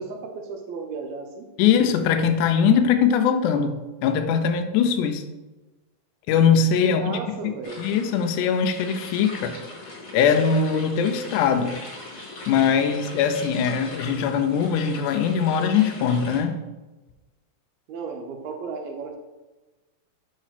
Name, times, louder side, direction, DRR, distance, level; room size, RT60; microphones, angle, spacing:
voice 1, 0.0-1.5 6.8-7.8 17.9-19.2, right 4 dB, 80° right, 3 dB, 1.6 m, -34 dB
voice 2, 1.6-3.7 4.0-5.2 6.3-9.5 10.1-11.7 12.5-16.6, left 7 dB, 80° left, 6 dB, 1.9 m, -21 dB
sound 1, 7.6-16.4, left 2 dB, 45° left, 2.0 m, -40 dB
6.5 x 3.1 x 5.7 m, 1.1 s
omnidirectional pair, 4.0 m